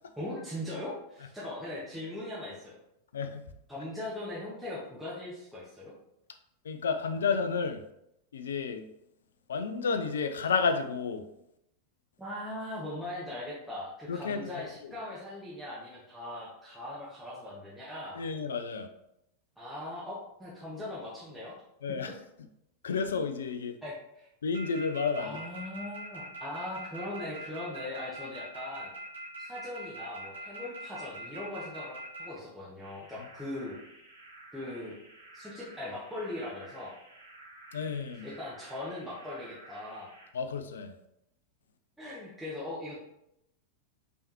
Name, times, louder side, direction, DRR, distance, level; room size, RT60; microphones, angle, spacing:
voice 1, 0.2-2.7 3.7-5.9 12.2-18.2 19.6-21.5 22.0-22.1 23.8-24.3 25.2-28.9 29.4-33.8 34.5-34.9 35.3-36.9 38.2-40.1 42.0-43.0, left 1 dB, 5° right, -8 dB, 1.1 m, -40 dB
voice 2, 3.1-3.5 6.6-7.8 8.3-8.9 9.5-11.3 14.1-14.9 18.1-18.9 21.8-22.2 22.8-23.7 24.4-25.4 33.2-33.3 37.7-38.3 40.3-41.0, left 5 dB, 65° left, 8 dB, 0.5 m, -31 dB
sound 1, 24.5-32.3 32.8-40.3, right 2 dB, 75° right, 1.5 m, -46 dB
5.3 x 3.4 x 2.9 m, 0.81 s
figure-of-eight pair, 90°, 0 cm